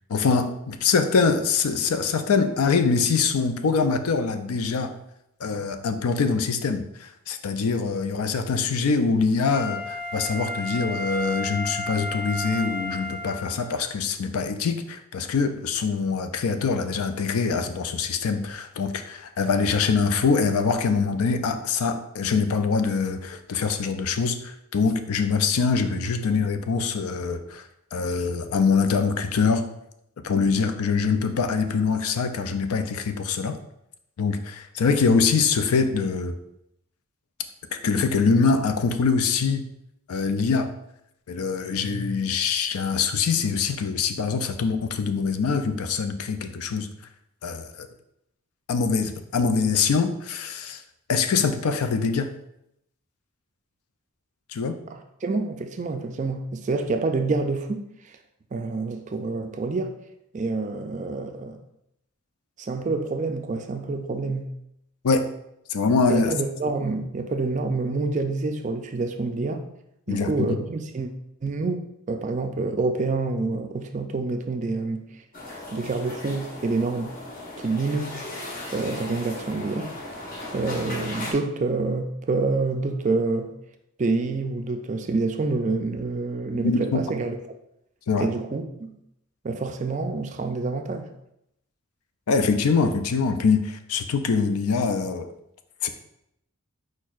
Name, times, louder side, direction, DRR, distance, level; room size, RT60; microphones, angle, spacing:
voice 1, 0.1-4.9 5.4-27.6 27.9-29.7 30.2-33.6 34.2-36.4 37.7-39.7 40.1-40.7 41.3-46.9 47.4-47.9 48.7-50.8 51.1-52.3 54.5-54.8 65.0-65.3 65.7-66.3 70.1-70.5 86.6-87.0 88.1-88.3 92.3-95.3 95.8-95.9, left 5 dB, 80° left, 9 dB, 0.4 m, -24 dB
Wind instrument woodwind instrument, 9.5-13.8 14.3-14.4, left 1 dB, 20° left, 1.2 m, -32 dB
voice 2, 54.9-58.2 58.5-59.9 60.3-61.6 62.6-64.5 66.1-69.7 70.1-71.1 71.4-75.2 75.7-77.1 77.6-78.2 78.7-79.9 80.5-83.5 84.0-87.4 88.2-89.0 89.4-91.1, right 3 dB, 35° right, 6 dB, 0.3 m, -27 dB
sound 1, 75.3-81.3, left 1 dB, 40° left, 0.9 m, -37 dB
4.6 x 4.4 x 2.4 m, 0.80 s
head